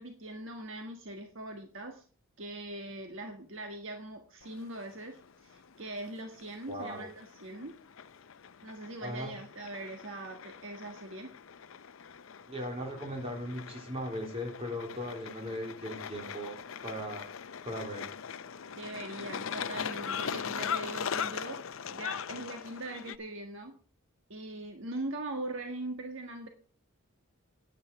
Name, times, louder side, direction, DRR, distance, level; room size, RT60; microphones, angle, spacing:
voice 1, 0.0-2.0 2.4-7.8 8.6-11.3 18.7-21.6 21.9-23.7 24.3-26.5, right 2 dB, 60° right, 4 dB, 1.5 m, -41 dB
sound 1, 4.4-23.2, left 7 dB, 70° left, 0.6 m, -41 dB
voice 2, 6.7-7.1 9.0-9.3 12.5-16.6 16.8-17.3 17.6-18.1, equal, 30° right, 0 dB, 3.6 m, -38 dB
9.9 x 9.7 x 5.9 m, 0.42 s
head